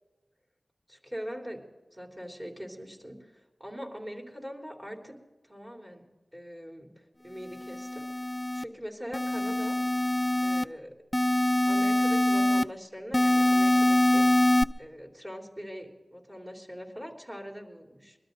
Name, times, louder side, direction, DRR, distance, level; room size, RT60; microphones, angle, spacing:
voice 1, 0.9-1.6 1.9-5.1 5.4-6.0 6.3-8.0 8.5-9.8 10.4-10.9 11.7-14.2 14.8-18.2, equal, 20° right, 0 dB, 3.4 m, -42 dB
sound 1, 7.5-8.6 9.1-10.6 11.1-12.6 13.1-14.6, left 1 dB, 15° left, 0.5 m, -24 dB
22.5 x 13.0 x 4.0 m, 1.2 s
wide cardioid pair, 55°, 0 cm